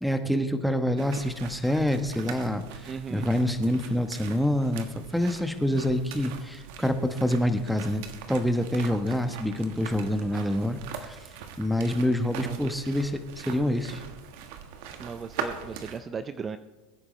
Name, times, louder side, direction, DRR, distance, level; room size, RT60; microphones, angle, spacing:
voice 1, 0.0-8.0 8.3-11.2 11.6-14.0, equal, ahead, 7 dB, 1.1 m, -27 dB
sound 1, 1.0-16.0, right 7 dB, 65° right, 1.4 m, -41 dB
voice 2, 2.9-3.8 12.4-13.0 15.0-16.6, right 5 dB, 25° right, 11 dB, 0.5 m, -38 dB
22.0 x 9.6 x 3.2 m, 1.2 s
hypercardioid pair, 105°, 0 cm